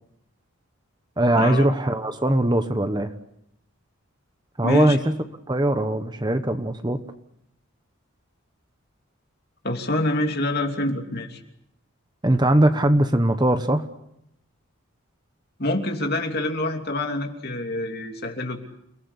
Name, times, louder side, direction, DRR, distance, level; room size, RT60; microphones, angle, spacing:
voice 1, 1.2-3.1 4.6-5.0 5.5-7.0 12.2-13.9, right 1 dB, 20° right, 9 dB, 1.2 m, -20 dB
voice 2, 4.6-5.0 9.6-11.4 15.6-18.6, left 1 dB, 45° left, 4 dB, 3.0 m, -26 dB
29.5 x 19.0 x 8.2 m, 0.80 s
head